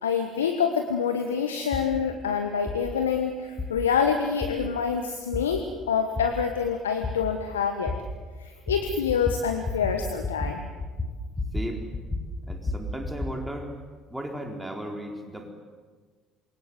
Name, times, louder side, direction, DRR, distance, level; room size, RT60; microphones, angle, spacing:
voice 1, 0.0-7.9 8.4-10.7, left 6 dB, 80° left, 6 dB, 1.4 m, -26 dB
sound 1, 1.7-1.9 2.7-2.8 3.6-3.7 4.4-4.5 5.3-5.4 6.2-6.3 7.0-7.1 7.9-8.0 8.7-8.8 9.1-9.4 9.7-10.0 10.2-10.5 10.8-11.7 11.9-13.3, left 3 dB, 25° left, 6.7 m, -30 dB
voice 2, 12.5-13.7 14.1-15.5, right 1 dB, 10° right, 3 dB, 4.2 m, -35 dB
28.0 x 23.5 x 8.1 m, 1.4 s
figure-of-eight pair, 55°, 0 cm